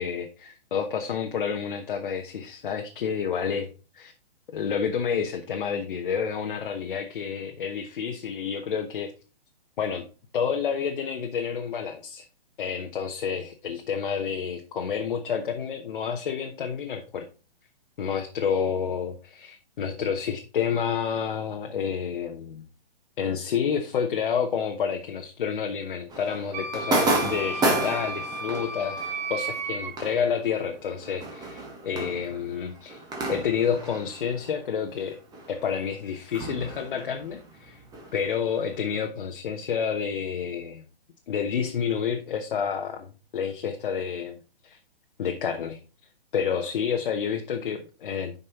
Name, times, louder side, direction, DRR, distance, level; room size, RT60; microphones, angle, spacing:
voice 1, 0.0-3.7 3.9-4.1 4.5-9.1 9.8-10.0 10.3-12.2 12.6-17.3 18.0-22.6 23.2-29.0 29.3-33.0 33.3-35.2 35.5-37.8 38.1-40.8 41.3-44.8 45.2-45.8 46.3-48.4, left 7 dB, 55° left, 3 dB, 1.1 m, -29 dB
sound 1, 26.1-35.1 35.3-38.9, right 2 dB, 15° right, 1.6 m, -32 dB
Wind instrument woodwind instrument, 26.5-29.9, right 2 dB, 45° right, 3.6 m, -33 dB
7.5 x 5.4 x 4.1 m, 0.34 s
figure-of-eight pair, 130°, 30 cm